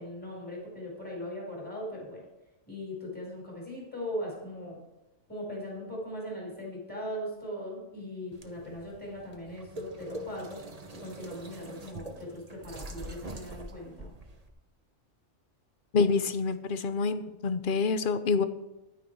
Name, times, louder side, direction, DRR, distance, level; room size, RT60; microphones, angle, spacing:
voice 1, 0.0-2.3 2.7-4.8 5.3-10.6 10.9-14.1, equal, 5° left, -3 dB, 5.0 m, -39 dB
sound 1, 8.3-14.5, right 1 dB, 35° right, 1.1 m, -44 dB
voice 2, 15.9-18.4, left 4 dB, 50° left, 12 dB, 0.9 m, -27 dB
11.5 x 9.6 x 4.7 m, 0.98 s
omnidirectional pair, 1.2 m